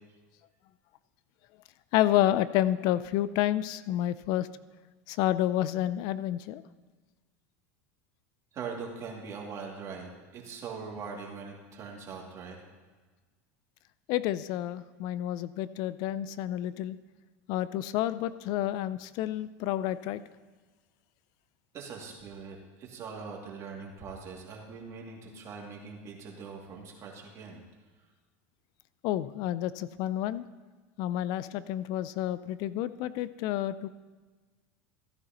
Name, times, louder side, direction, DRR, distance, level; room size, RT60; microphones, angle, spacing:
voice 1, 1.9-4.5 5.1-6.6 14.1-17.0 17.5-20.2 29.0-30.4 31.0-33.9, left 13 dB, 55° left, 16 dB, 0.4 m, -29 dB
voice 2, 8.5-12.6 21.7-27.6, right 5 dB, 40° right, -1 dB, 2.5 m, -42 dB
14.5 x 9.8 x 3.0 m, 1.3 s
supercardioid pair, 110°, 8 cm